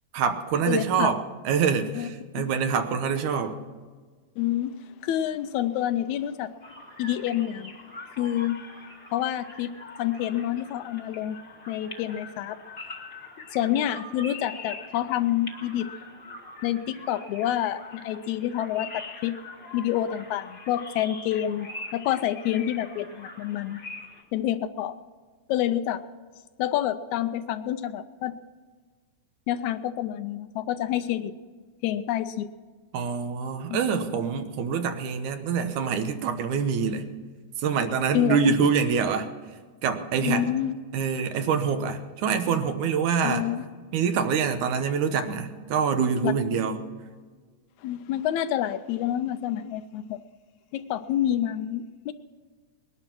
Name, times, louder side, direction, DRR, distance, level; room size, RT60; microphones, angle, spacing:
voice 1, 0.1-3.6 32.9-37.0 37.6-39.3 39.8-40.5 40.9-43.5 43.9-46.8, right 6 dB, 80° right, 8 dB, 2.5 m, -25 dB
voice 2, 0.7-1.1 2.0-2.1 2.4-2.5 4.4-4.7 5.0-6.5 7.0-7.7 8.2-8.6 9.1-9.7 10.0-11.4 11.7-12.6 13.5-15.9 16.6-19.3 19.7-23.8 24.3-25.0 25.5-26.0 26.6-28.3 29.5-31.3 31.8-32.5 33.7-34.0 38.1-38.5 40.2-40.7 43.2-43.7 46.2-46.3 47.8-50.2 50.7-52.1, left 11 dB, 80° left, 12 dB, 1.9 m, -28 dB
sound 1, 6.6-24.2, left 2 dB, 25° left, 1.2 m, -43 dB
20.5 x 11.5 x 6.0 m, 1.5 s
omnidirectional pair, 3.5 m